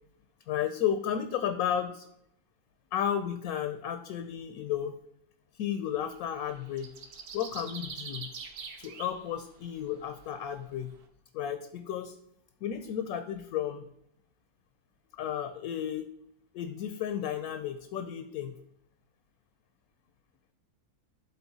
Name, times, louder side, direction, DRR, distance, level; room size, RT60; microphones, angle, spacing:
voice 1, 0.5-2.1 2.9-5.0 5.6-6.9 7.3-8.3 8.8-11.0 11.3-12.1 12.6-13.8 15.2-16.1 16.5-18.6, left 9 dB, 70° left, 9 dB, 1.0 m, -33 dB
sound 1, 6.0-6.3 6.5-9.2 9.6-9.7, right 5 dB, 70° right, 1.3 m, -43 dB
11.5 x 3.9 x 4.0 m, 0.76 s
omnidirectional pair, 1.7 m